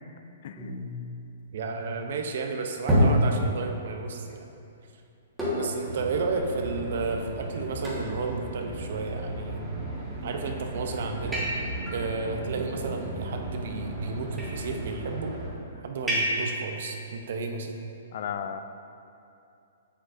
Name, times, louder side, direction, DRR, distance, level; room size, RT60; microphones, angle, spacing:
sound 1, 0.6-2.0 2.9-3.8 5.4-5.9 6.4-6.5 7.1-7.2 7.8-8.2 9.3-9.8 10.4-10.7 11.3-12.0 13.1-13.7 14.2-14.7 16.1-16.7, equal, 5° right, 1.4 m, -28 dB
voice 1, 1.5-4.5 5.6-9.6 10.2-11.5 11.9-15.4 15.8-17.7, right 4 dB, 60° right, 4 dB, 0.6 m, -32 dB
sound 2, 5.8-15.5, right 1 dB, 25° right, 1.3 m, -36 dB
voice 2, 18.1-18.6, left 8 dB, 50° left, 9 dB, 0.3 m, -35 dB
7.0 x 6.8 x 2.6 m, 2.6 s
hypercardioid pair, 160°, 0 cm